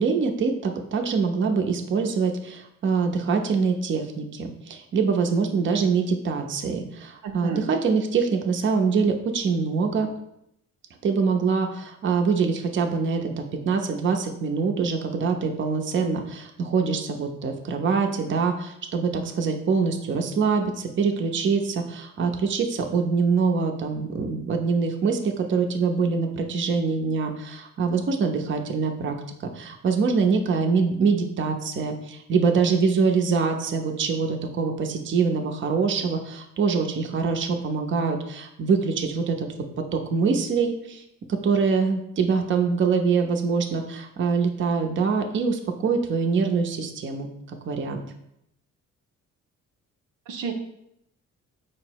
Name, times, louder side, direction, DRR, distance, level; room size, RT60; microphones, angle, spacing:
voice 1, 0.0-10.1 11.0-39.5 39.9-41.0 41.3-48.0, right 5 dB, 40° right, 3 dB, 0.6 m, -24 dB
voice 2, 7.2-7.7 50.3-50.5, right 6 dB, 85° right, 4 dB, 0.6 m, -31 dB
4.6 x 2.0 x 4.5 m, 0.79 s
cardioid pair, 90°, 30 cm